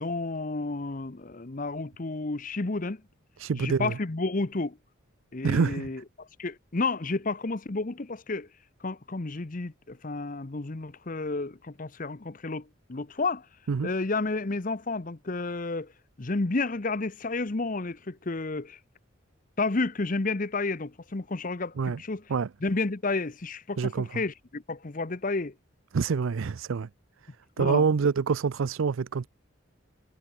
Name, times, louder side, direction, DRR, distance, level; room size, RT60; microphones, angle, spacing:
voice 1, 0.0-3.0 3.6-4.8 5.3-8.5 8.8-13.5 13.8-15.9 16.2-18.8 19.6-22.2 22.6-25.5 27.6-27.9, left 3 dB, 40° left, 0.8 m, -31 dB
voice 2, 3.4-4.0 5.4-5.9 13.7-13.9 21.8-22.0 22.3-22.5 23.8-24.2 25.9-26.9 27.6-29.3, right 5 dB, 75° right, 0.5 m, -26 dB
head